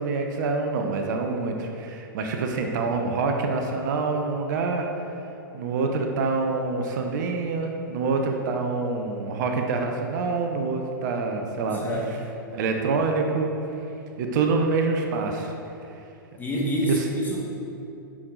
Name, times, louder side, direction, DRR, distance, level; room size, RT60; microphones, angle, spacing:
voice 1, 0.0-4.9 5.5-11.8 12.5-13.5 14.2-15.5 16.9-17.0, right 4 dB, 55° right, 3 dB, 1.0 m, -26 dB
voice 2, 11.7-12.1 16.4-17.4, equal, 15° left, -3 dB, 1.8 m, -27 dB
9.5 x 6.4 x 4.0 m, 2.7 s
hypercardioid pair, 110°, 12 cm